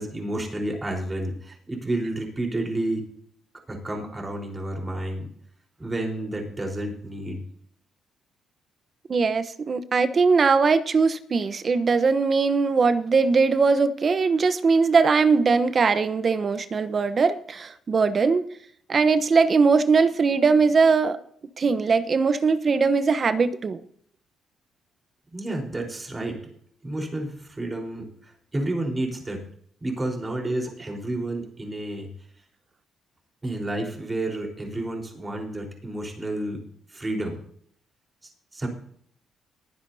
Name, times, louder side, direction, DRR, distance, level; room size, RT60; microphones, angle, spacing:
voice 1, 0.0-3.1 3.7-5.3 5.8-7.4 25.3-26.4 26.8-28.1 28.5-29.4 29.8-32.1 33.4-36.6 36.9-37.4 38.5-38.7, right 1 dB, 20° right, 4.2 m, -30 dB
voice 2, 9.1-18.5 18.9-21.2 21.6-23.8, right 4 dB, 40° right, 0.9 m, -20 dB
22.0 x 10.5 x 2.8 m
cardioid pair, 90°, 0 cm